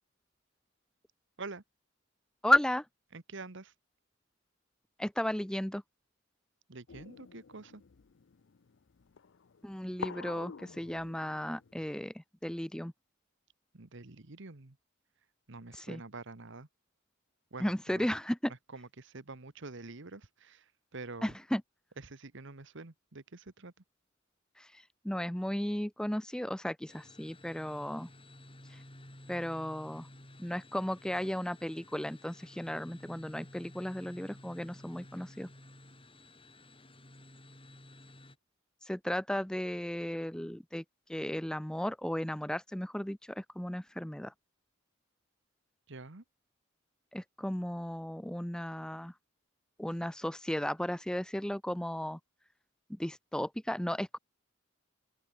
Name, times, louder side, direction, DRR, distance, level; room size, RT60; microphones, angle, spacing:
voice 1, 2.4-2.8 5.0-5.8 9.6-12.9 15.8-16.0 17.6-18.5 21.2-21.6 24.6-28.1 29.3-30.1 30.4-35.5 38.9-40.8 41.1-44.3 47.1-49.1 49.8-52.2 52.9-54.2, equal, 5° left, 0.6 m, -34 dB
voice 2, 3.1-3.7 6.7-7.8 13.7-14.8 15.5-16.7 17.5-18.1 18.5-21.3 22.0-23.7 45.9-46.2, right 3 dB, 65° right, 1.5 m, -47 dB
sound 1, 6.9-11.9, left 6 dB, 65° left, 0.6 m, -47 dB
sound 2, 26.9-38.4, left 1 dB, 25° left, 7.4 m, -54 dB
open air
head